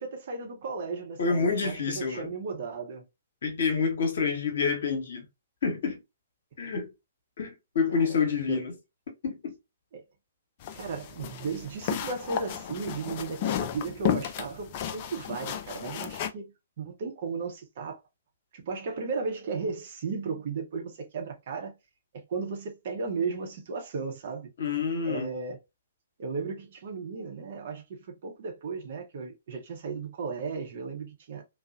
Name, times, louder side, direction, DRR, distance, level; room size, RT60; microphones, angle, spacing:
voice 1, 0.0-3.1 6.7-6.8 7.9-8.1 8.5-8.6 9.9-10.0 10.7-16.5 16.8-18.0 18.5-21.8 22.1-24.5 25.0-25.6 26.2-31.4, right 4 dB, 45° right, 0.7 m, -35 dB
voice 2, 1.2-2.3 3.4-5.3 5.6-6.0 6.6-6.9 7.4-8.7 9.2-9.6 24.6-25.3, left 5 dB, 60° left, 0.8 m, -28 dB
sound 1, 10.6-16.3, left 10 dB, 40° left, 0.3 m, -33 dB
2.7 x 2.0 x 2.3 m
figure-of-eight pair, 120°, 0 cm